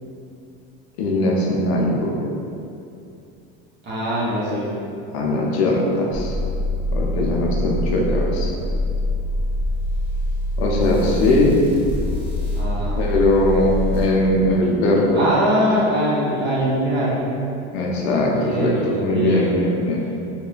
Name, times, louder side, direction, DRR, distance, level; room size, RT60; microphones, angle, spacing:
voice 1, 1.0-2.1 5.1-6.3 6.9-8.5 10.6-11.5 13.0-15.2 17.7-20.0, left 1 dB, 85° left, -2 dB, 0.6 m, -20 dB
voice 2, 3.8-4.7 12.6-13.1 15.1-17.2 18.3-19.5, equal, 35° right, -7 dB, 0.9 m, -22 dB
sound 1, 6.1-14.0, left 1 dB, 5° left, 0.6 m, -24 dB
2.9 x 2.1 x 2.3 m, 2.6 s
supercardioid pair, 110°, 31 cm